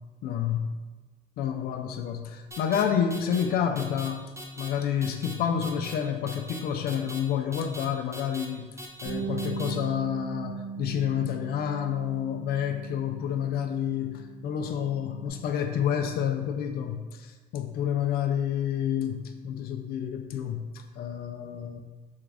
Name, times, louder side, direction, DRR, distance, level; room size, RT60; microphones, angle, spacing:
voice 1, 0.2-0.7 1.4-8.7 9.0-20.7 21.0-21.8, left 8 dB, 65° left, 5 dB, 0.4 m, -29 dB
sound 1, 2.5-2.8 3.1-3.4 3.8-4.1 4.4-4.7 5.0-5.3 5.6-5.9 6.3-6.6 6.9-7.2 7.5-7.8 8.1-8.5 8.8-9.1 9.4-9.7, equal, 15° right, 0.5 m, -41 dB
Bass guitar, 9.0-13.8 14.1-15.3, right 6 dB, 75° right, 0.9 m, -39 dB
3.6 x 2.4 x 3.3 m, 1.2 s
cardioid pair, 110°, 17 cm